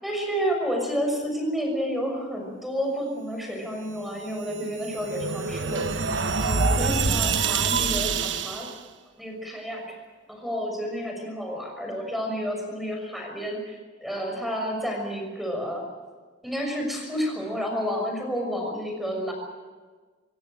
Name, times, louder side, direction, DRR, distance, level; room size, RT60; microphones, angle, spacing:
voice 1, 0.0-6.1 6.4-8.7 9.2-9.8 10.3-15.9 16.4-19.3, equal, ahead, 2 dB, 6.3 m, -30 dB
sound 1, 4.3-8.8, right 5 dB, 75° right, 1.3 m, -26 dB
25.0 x 17.0 x 9.0 m, 1.4 s
head